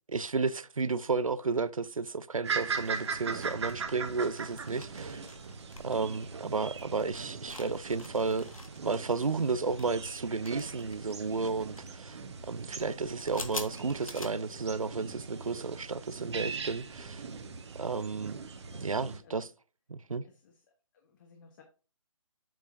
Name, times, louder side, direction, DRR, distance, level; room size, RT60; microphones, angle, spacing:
voice 1, 0.1-5.2 5.8-8.5 8.8-12.2 12.5-17.2 17.8-18.4 18.7-19.5 19.9-20.2, right 4 dB, 90° right, 0.6 m, -32 dB
sound 1, 2.4-19.2, right 5 dB, 55° right, 1.3 m, -40 dB
sound 2, 2.8-14.3, left 2 dB, 85° left, 1.6 m, -48 dB
voice 2, 18.7-19.4 20.4-20.5 21.0-21.6, left 5 dB, 35° left, 1.2 m, -57 dB
8.4 x 6.3 x 2.6 m
figure-of-eight pair, 145°, 17 cm